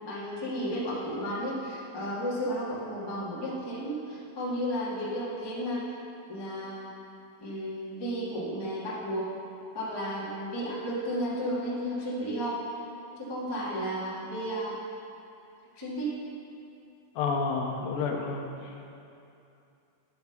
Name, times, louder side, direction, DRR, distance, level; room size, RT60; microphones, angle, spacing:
voice 1, 0.0-5.8 6.3-6.8 7.4-9.3 9.7-12.6 13.2-14.8 15.7-16.1, equal, 40° left, -8 dB, 0.3 m, -33 dB
voice 2, 17.2-18.5, left 4 dB, 80° left, 2 dB, 2.2 m, -29 dB
10.5 x 5.2 x 5.9 m, 2.6 s
omnidirectional pair, 4.4 m